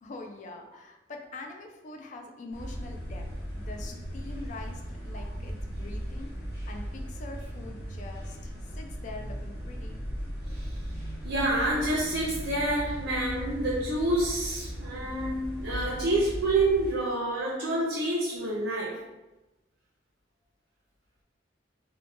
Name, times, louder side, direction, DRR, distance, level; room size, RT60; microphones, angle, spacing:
voice 1, 0.0-3.3 3.5-6.3 6.7-10.0, left 2 dB, 45° left, 3 dB, 0.3 m, -44 dB
sound 1, 2.5-16.9, equal, 75° left, 1.5 m, -37 dB
voice 2, 11.2-19.0, right 1 dB, 75° right, -5 dB, 0.5 m, -28 dB
2.9 x 2.2 x 2.5 m, 1.0 s
head